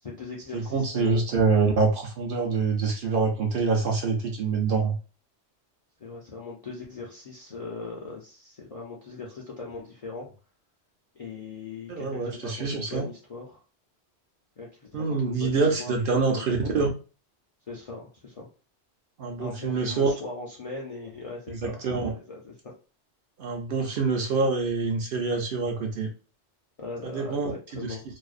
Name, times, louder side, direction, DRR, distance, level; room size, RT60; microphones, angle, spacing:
voice 1, 0.0-1.2 6.0-10.3 11.1-13.6 14.6-16.0 16.3-16.9 17.7-18.5 19.4-21.8 22.1-22.7 26.8-28.0, left 3 dB, 50° left, -4 dB, 0.4 m, -39 dB
voice 2, 0.5-5.0 11.9-13.0 14.9-16.9 19.2-20.1 21.6-22.1 23.4-26.1 27.0-28.0, right 4 dB, 60° right, 1 dB, 0.7 m, -26 dB
2.5 x 2.0 x 2.4 m, 0.34 s
omnidirectional pair, 1.2 m